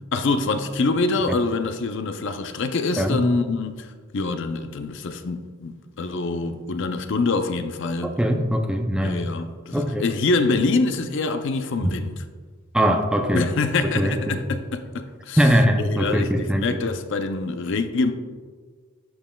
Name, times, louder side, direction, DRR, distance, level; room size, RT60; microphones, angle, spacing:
voice 1, 0.1-8.2 9.0-12.1 13.3-15.4 15.8-18.1, left 3 dB, 55° left, 0.5 m, -25 dB
voice 2, 8.0-9.2 9.7-10.1 12.7-13.5 14.0-14.4 15.4-16.6, equal, 5° right, 0.4 m, -21 dB
10.5 x 5.2 x 2.3 m
head